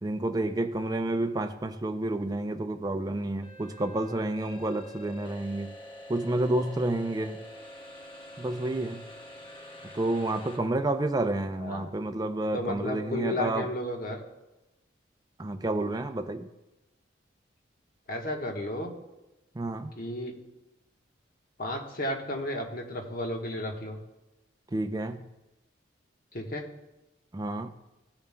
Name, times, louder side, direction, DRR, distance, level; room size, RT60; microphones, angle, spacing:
voice 1, 0.0-5.8 6.1-7.4 8.4-9.1 9.9-13.7 15.4-16.5 19.5-19.9 24.7-25.3 27.3-27.7, right 2 dB, 20° right, 0.4 m, -30 dB
sound 1, 3.4-10.6, left 1 dB, 25° left, 1.0 m, -46 dB
voice 2, 11.6-11.9 12.5-14.2 18.1-18.9 19.9-20.4 21.6-24.0 26.3-26.7, left 1 dB, 50° left, 1.2 m, -33 dB
15.0 x 7.1 x 2.2 m
head